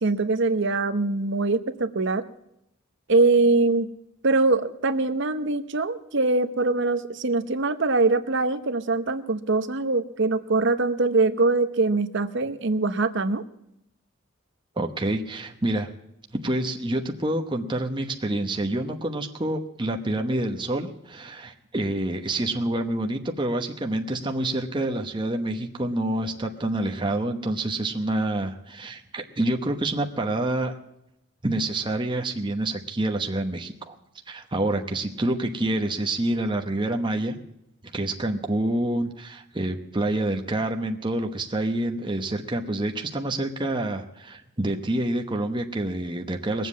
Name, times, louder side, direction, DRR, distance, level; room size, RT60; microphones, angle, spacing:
voice 1, 0.0-2.2 3.1-3.9 4.2-13.4, right 3 dB, 55° right, 10 dB, 0.9 m, -23 dB
voice 2, 14.8-15.9 16.3-30.7 31.4-34.0 34.3-37.4 37.9-46.7, right 1 dB, 20° right, 4 dB, 1.0 m, -27 dB
21.0 x 7.6 x 8.3 m, 0.84 s
head